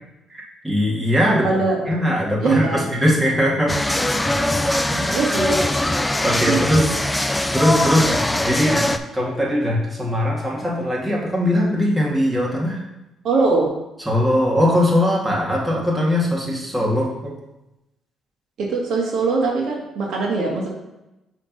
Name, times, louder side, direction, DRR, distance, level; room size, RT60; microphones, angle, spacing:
voice 1, 0.3-1.4 1.9-3.7 4.8-5.1 6.2-6.8 7.5-8.2 8.4-8.8 9.1-12.8 14.1-17.3, equal, 15° right, -4 dB, 2.3 m, -20 dB
voice 2, 1.2-1.8 2.4-2.9 4.1-4.4 5.1-5.6 6.5-6.9 13.2-13.7 18.6-20.7, right 3 dB, 70° right, -2 dB, 1.7 m, -22 dB
sound 1, 3.7-9.0, left 1 dB, 10° left, 0.5 m, -21 dB
6.4 x 3.7 x 5.4 m, 0.94 s
cardioid pair, 80°, 0 cm